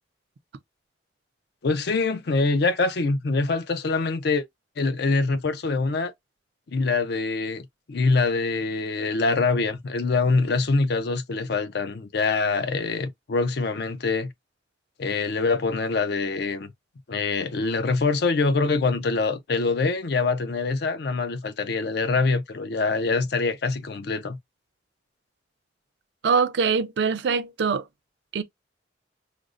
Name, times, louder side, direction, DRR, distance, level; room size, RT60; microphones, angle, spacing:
voice 1, 1.6-4.4 4.8-6.1 6.7-14.3 15.0-16.7 17.1-24.4, left 3 dB, 60° left, 0.5 m, -24 dB
voice 2, 26.2-27.8 28.3-28.4, right 5 dB, 65° right, 0.4 m, -23 dB
4.9 x 2.1 x 2.4 m
head